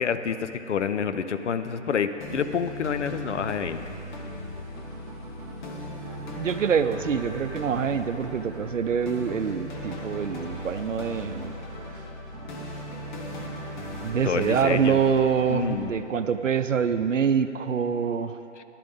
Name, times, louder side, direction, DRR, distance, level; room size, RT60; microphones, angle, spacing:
voice 1, 0.0-3.8 14.2-15.0 15.5-15.9 18.6-18.7, left 7 dB, 70° left, 10 dB, 0.7 m, -28 dB
sound 1, 2.2-15.9, left 1 dB, 40° left, 1.4 m, -38 dB
sound 2, 4.7-16.0, right 5 dB, 35° right, 0.9 m, -46 dB
voice 2, 6.3-11.5 14.0-18.4, right 7 dB, 90° right, 11 dB, 0.7 m, -25 dB
11.5 x 11.0 x 3.9 m, 2.9 s
hypercardioid pair, 150°, 37 cm